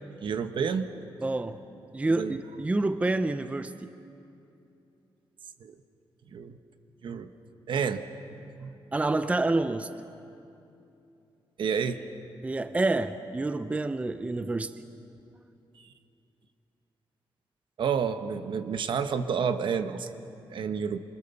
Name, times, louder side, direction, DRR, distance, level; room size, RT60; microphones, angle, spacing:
voice 1, 0.2-0.9 2.1-2.4 5.6-5.7 6.3-6.5 7.0-7.3 7.7-8.0 8.6-8.7 11.6-12.0 17.8-20.1 20.5-21.0, right 6 dB, 65° right, 9 dB, 1.1 m, -29 dB
voice 2, 1.2-1.6 1.9-3.9 8.9-9.9 12.4-14.7, right 2 dB, 15° right, 11 dB, 0.6 m, -28 dB
27.0 x 24.5 x 6.9 m, 2.7 s
wide cardioid pair, 130°, 9 cm